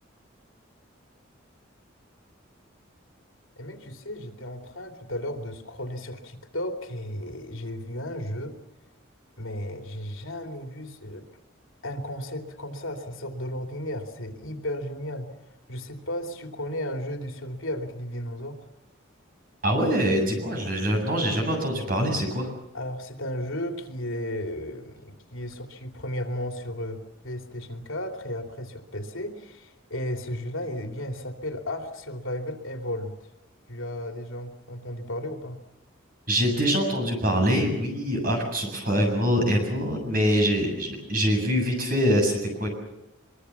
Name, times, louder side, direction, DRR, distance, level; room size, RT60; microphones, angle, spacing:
voice 1, 3.6-8.6 9.4-11.2 11.8-15.4 15.7-18.6 22.7-33.3 33.7-35.6, left 1 dB, 80° left, 4 dB, 2.9 m, -34 dB
voice 2, 19.6-22.5 36.3-42.7, equal, 45° right, 3 dB, 7.4 m, -24 dB
23.5 x 23.5 x 7.2 m, 0.90 s
head